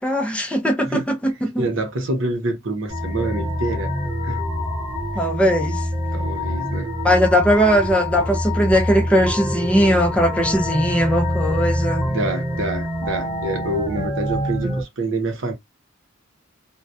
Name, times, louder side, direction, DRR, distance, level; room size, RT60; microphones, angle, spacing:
voice 1, 0.0-1.6 5.2-5.9 7.0-12.1, equal, 5° left, 0.4 m, -19 dB
voice 2, 1.6-3.9 4.2-4.4 5.1-5.3 6.1-6.9 12.1-15.5, right 2 dB, 70° right, 0.8 m, -26 dB
sound 1, 2.9-14.8, left 1 dB, 10° right, 0.9 m, -25 dB
2.2 x 2.1 x 2.6 m
head